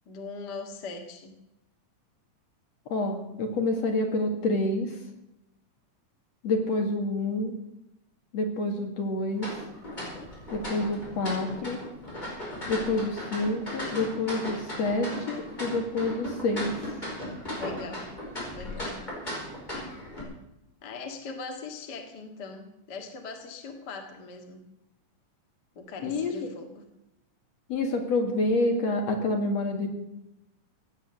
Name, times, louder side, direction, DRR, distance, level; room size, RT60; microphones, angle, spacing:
voice 1, 0.1-1.3 17.6-18.1 18.5-19.1 20.8-24.6 25.8-26.8, left 4 dB, 40° left, 4 dB, 1.9 m, -40 dB
voice 2, 2.9-4.9 6.4-7.5 8.3-9.5 10.5-11.8 12.7-16.8 26.0-26.3 27.7-29.9, left 2 dB, 55° left, 3 dB, 3.2 m, -28 dB
sound 1, 9.4-20.2, left 1 dB, 15° left, 5.1 m, -37 dB
16.0 x 9.0 x 7.7 m, 0.88 s
omnidirectional pair, 3.7 m